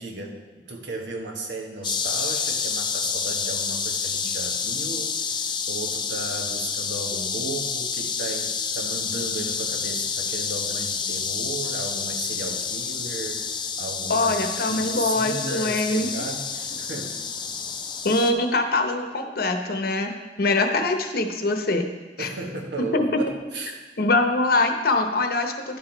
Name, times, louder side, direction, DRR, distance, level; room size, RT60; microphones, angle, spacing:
voice 1, 0.0-14.4 14.7-17.1 22.2-23.8, right 2 dB, 85° right, 1 dB, 1.3 m, -35 dB
sound 1, 1.8-18.3, left 6 dB, 25° left, 0.5 m, -29 dB
voice 2, 14.1-16.1 18.0-20.1 20.4-21.9 22.2-22.3 22.9-23.2 24.0-25.8, left 2 dB, 55° left, 6 dB, 0.8 m, -23 dB
11.0 x 5.9 x 4.5 m, 1.3 s
head